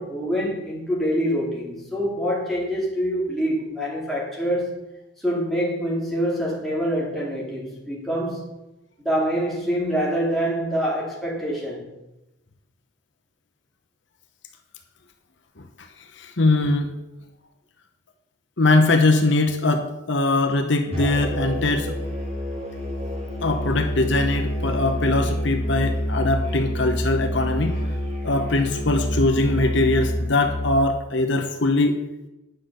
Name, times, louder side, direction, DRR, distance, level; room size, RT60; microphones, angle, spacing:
voice 1, 0.0-4.8 5.2-8.5 9.0-11.9, equal, ahead, -3 dB, 2.3 m, -25 dB
voice 2, 16.1-16.9 18.6-21.9 23.4-27.8 28.2-32.0, left 2 dB, 60° left, 5 dB, 0.9 m, -21 dB
Musical instrument, 20.9-30.8, equal, 30° right, 2.5 m, -27 dB
9.9 x 6.0 x 6.6 m, 0.94 s
head